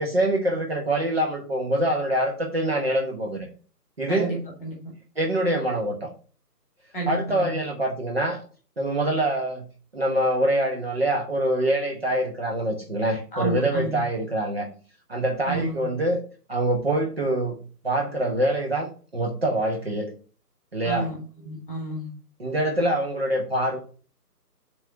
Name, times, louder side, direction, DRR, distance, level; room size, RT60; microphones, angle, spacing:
voice 1, 0.0-3.5 4.0-4.4 5.2-6.1 7.1-8.4 8.8-9.6 9.9-14.7 15.1-16.2 16.5-17.6 17.8-20.1 20.7-21.1 22.4-23.8, right 1 dB, 40° right, 1 dB, 1.1 m, -25 dB
voice 2, 4.1-4.8 6.9-7.5 13.3-14.0 15.4-15.8 20.8-21.1 21.4-22.1, right 2 dB, ahead, -1 dB, 1.4 m, -30 dB
6.6 x 3.9 x 5.6 m, 0.39 s
figure-of-eight pair, 170°, 49 cm